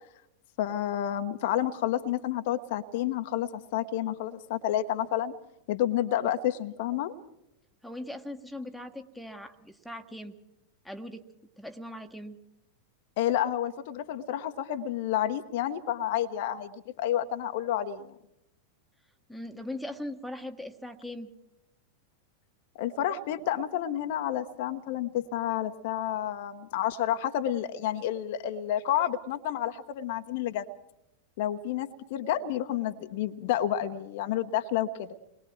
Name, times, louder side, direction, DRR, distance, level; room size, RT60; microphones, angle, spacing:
voice 1, 0.6-5.3 5.7-7.1 13.2-18.1 22.8-30.6 31.4-35.1, left 11 dB, 50° left, 8 dB, 1.1 m, -30 dB
voice 2, 7.8-10.4 10.8-11.2 11.6-12.4 19.3-21.3, left 1 dB, ahead, 4 dB, 1.5 m, -40 dB
29.0 x 21.5 x 4.6 m, 0.84 s
figure-of-eight pair, 90°, 0 cm